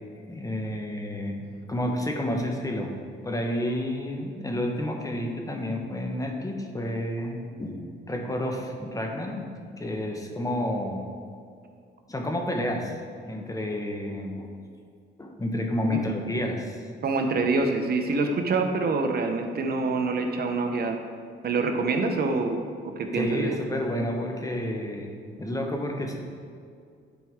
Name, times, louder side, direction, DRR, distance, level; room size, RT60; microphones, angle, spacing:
voice 1, 0.3-3.0 3.2-9.5 9.8-11.0 12.1-13.0 13.3-14.5 15.2-16.8 23.1-25.1 25.4-26.2, left 1 dB, 15° left, 2 dB, 1.1 m, -30 dB
voice 2, 17.0-21.0 21.4-22.6 23.0-23.5, right 3 dB, 55° right, 5 dB, 0.9 m, -26 dB
10.5 x 4.6 x 3.6 m, 2.3 s
cardioid pair, 90°, 20 cm